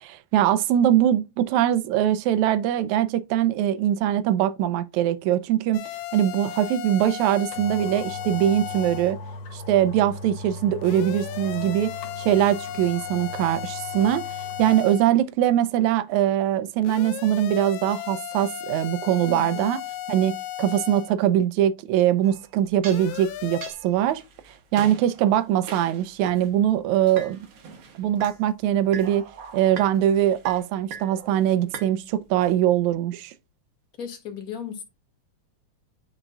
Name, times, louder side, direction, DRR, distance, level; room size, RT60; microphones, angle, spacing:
voice 1, 0.0-9.2 9.5-11.9 12.2-14.2 14.6-19.8 20.1-24.2 24.7-27.4 28.0-29.3 29.5-33.3, right 11 dB, 80° right, 2.0 m, -22 dB
sound 1, 5.7-9.1 10.8-15.1 16.8-21.1 22.8-23.7, left 13 dB, 80° left, 1.8 m, -35 dB
sound 2, 7.0-7.1 7.5-14.8 15.2-15.3, left 2 dB, 65° left, 2.7 m, -39 dB
voice 2, 19.3-19.7 34.0-34.8, left 8 dB, 35° left, 1.9 m, -36 dB
sound 3, 22.2-26.5 27.0-28.4 28.8-31.9 32.3-32.5, right 6 dB, 60° right, 1.6 m, -42 dB
9.8 x 5.1 x 2.3 m
omnidirectional pair, 3.4 m